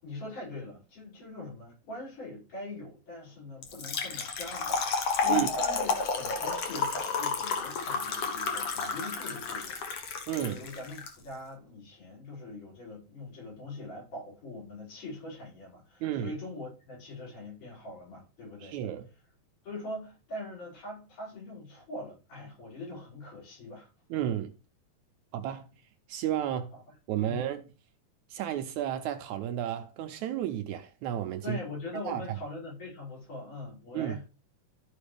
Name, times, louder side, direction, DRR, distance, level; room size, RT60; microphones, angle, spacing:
voice 1, 0.0-9.8 10.4-18.7 19.6-23.9 26.7-26.8 27.2-27.4 31.4-34.2, left 2 dB, 70° left, 7.3 m, -42 dB
Trickle dribble / Fill (with liquid), 3.6-11.1, left 5 dB, 55° left, 2.1 m, -31 dB
voice 2, 10.3-10.6 16.0-16.4 18.6-19.1 24.1-24.5 25.3-25.7 26.1-26.7 27.1-27.6 28.3-31.6 32.1-32.4 33.9-34.2, right 11 dB, 75° right, 1.9 m, -32 dB
14.0 x 5.2 x 3.4 m
omnidirectional pair, 3.7 m